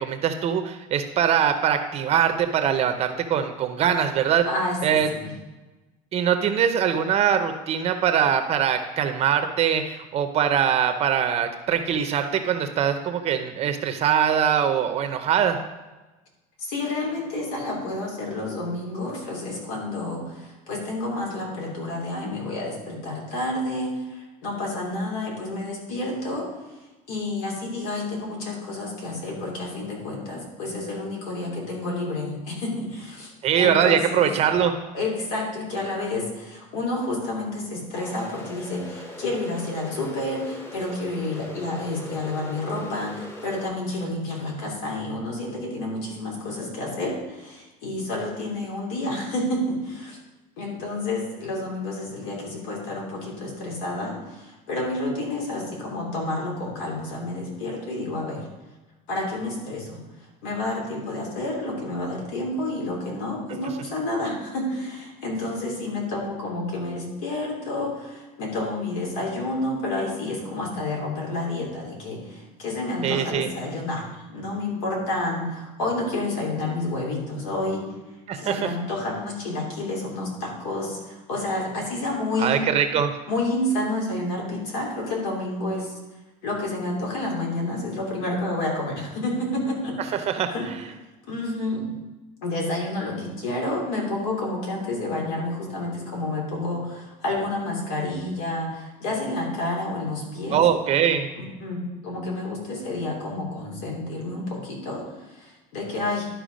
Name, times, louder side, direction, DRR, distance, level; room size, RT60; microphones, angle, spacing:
voice 1, 0.0-4.5 4.8-5.1 6.1-15.6 33.4-34.8 73.0-73.5 78.3-78.7 82.4-83.2 90.3-90.5 100.5-101.3, right 8 dB, 40° right, 7 dB, 0.6 m, -22 dB
voice 2, 4.4-5.3 16.6-26.5 27.1-34.3 34.9-50.2 50.6-58.4 59.1-60.0 60.4-74.0 74.3-77.8 78.3-82.7 83.3-85.9 86.4-90.7 91.2-91.9 92.4-100.6 101.3-106.3, left 2 dB, 90° left, -1 dB, 3.0 m, -29 dB
sound 1, 38.0-43.7, left 1 dB, 15° left, 0.9 m, -40 dB
12.0 x 4.5 x 5.1 m, 1.1 s
cardioid pair, 150°, 17 cm